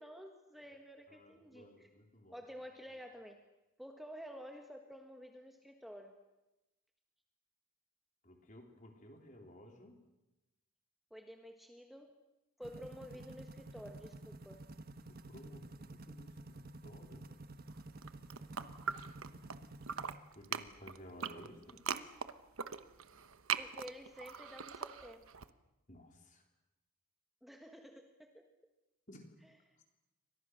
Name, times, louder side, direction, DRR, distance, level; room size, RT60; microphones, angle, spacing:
voice 1, 0.0-1.9 2.3-3.4 3.8-6.1 11.1-12.2 12.6-14.6 23.5-25.3 27.4-28.5 29.4-29.8, equal, ahead, 3 dB, 1.6 m, -51 dB
voice 2, 1.1-2.4 8.2-10.0 15.1-17.3 20.3-21.8 25.9-26.4 29.1-29.3, equal, 35° left, 3 dB, 4.0 m, -56 dB
sound 1, 12.6-20.2, right 2 dB, 45° right, 1.2 m, -51 dB
sound 2, 17.9-19.6 19.8-25.5, right 7 dB, 75° right, 1.1 m, -41 dB
29.5 x 25.0 x 6.5 m, 0.98 s
head